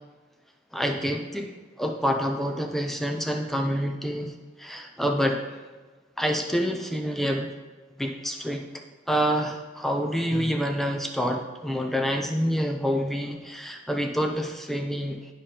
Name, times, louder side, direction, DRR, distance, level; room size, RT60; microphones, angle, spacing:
voice 1, 0.7-1.5 1.8-4.3 4.6-5.4 6.2-7.5 8.0-8.6 9.1-15.2, equal, ahead, 3 dB, 0.6 m, -27 dB
10.5 x 5.0 x 2.9 m, 1.3 s
head